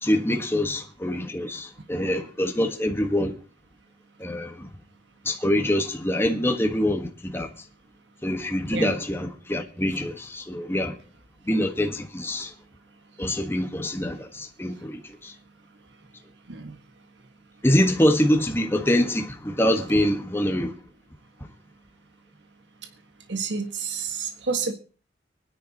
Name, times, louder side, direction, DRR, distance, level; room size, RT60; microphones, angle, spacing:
voice 1, 0.0-3.4 4.2-4.7 5.2-7.5 8.2-11.0 11.5-12.5 13.2-15.3 17.6-20.7, left 1 dB, 15° left, 1.4 m, -25 dB
voice 2, 23.3-24.7, right 5 dB, 75° right, 1.7 m, -29 dB
23.5 x 10.5 x 2.9 m
head